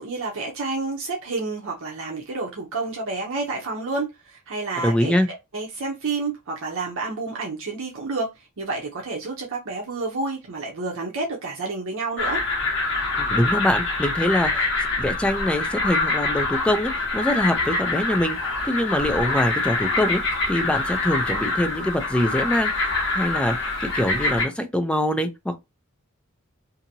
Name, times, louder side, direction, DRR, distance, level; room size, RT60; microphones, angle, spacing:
voice 1, 0.0-5.1 5.5-12.4, right 3 dB, 65° right, 0.7 m, -29 dB
voice 2, 4.8-5.3 13.1-18.4 18.6-20.2 20.5-25.5, left 1 dB, 5° left, 0.4 m, -24 dB
sound 1, 12.2-24.4, left 3 dB, 60° left, 1.0 m, -25 dB
2.8 x 2.5 x 2.7 m
head